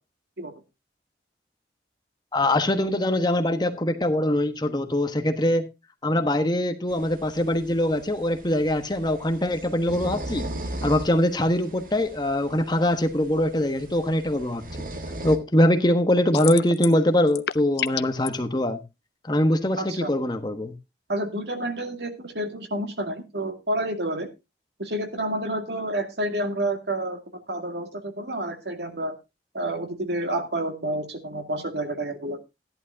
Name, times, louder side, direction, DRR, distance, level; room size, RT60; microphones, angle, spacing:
voice 1, 2.3-5.7 6.0-10.5 10.8-14.6 15.2-18.8 19.2-20.7, left 1 dB, 25° left, 1.3 m, -23 dB
sound 1, 6.9-15.4, right 1 dB, 50° right, 1.5 m, -38 dB
sound 2, 16.3-17.0 17.3-18.3, left 10 dB, 65° left, 0.5 m, -29 dB
voice 2, 19.8-20.1 21.1-24.3 24.8-29.2 29.5-32.4, right 1 dB, 75° right, 2.2 m, -29 dB
14.0 x 11.0 x 2.8 m
head